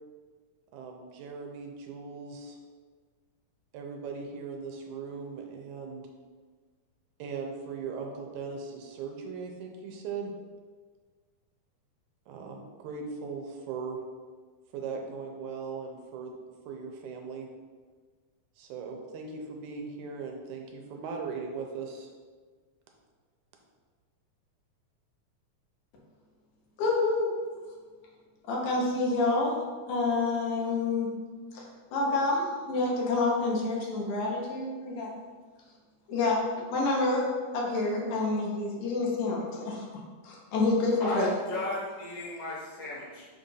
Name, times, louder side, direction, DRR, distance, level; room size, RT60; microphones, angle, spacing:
voice 1, 0.7-2.6 3.7-6.1 7.2-10.3 12.3-14.0 14.7-16.3 16.7-17.5 18.6-22.1, right 5 dB, 80° right, 1 dB, 2.0 m, -39 dB
voice 2, 26.8-27.3 28.5-29.6 29.9-31.1 31.5-31.6 31.9-35.1 36.1-36.4 36.7-39.8 40.2-41.4, left 3 dB, 70° left, -2 dB, 2.3 m, -28 dB
voice 3, 41.0-43.3, left 2 dB, 90° left, -6 dB, 3.3 m, -35 dB
7.2 x 2.6 x 5.4 m, 1.5 s
omnidirectional pair, 3.5 m